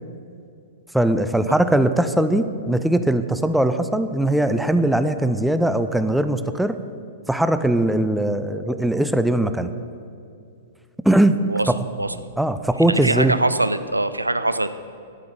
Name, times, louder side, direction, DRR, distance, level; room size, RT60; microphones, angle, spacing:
voice 1, 0.9-6.8 7.3-9.7 11.0-11.7 12.4-13.4, right 1 dB, ahead, 10 dB, 0.5 m, -20 dB
voice 2, 12.8-14.7, right 2 dB, 80° right, 13 dB, 0.5 m, -22 dB
11.5 x 8.6 x 6.5 m, 2.5 s
figure-of-eight pair, 105°, 0 cm